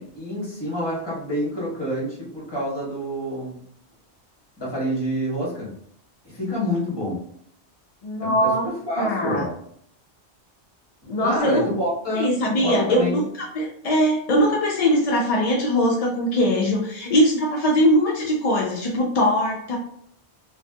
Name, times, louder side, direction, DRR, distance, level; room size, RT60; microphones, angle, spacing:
voice 1, 0.0-3.6 4.6-5.7 6.2-7.2 8.2-9.5 11.2-12.3 12.6-13.2, equal, 25° left, -6 dB, 1.3 m, -27 dB
voice 2, 8.0-8.6 9.0-9.4 11.1-11.7 12.1-19.8, equal, 60° left, -2 dB, 0.4 m, -21 dB
3.1 x 2.6 x 2.2 m, 0.67 s
omnidirectional pair, 1.1 m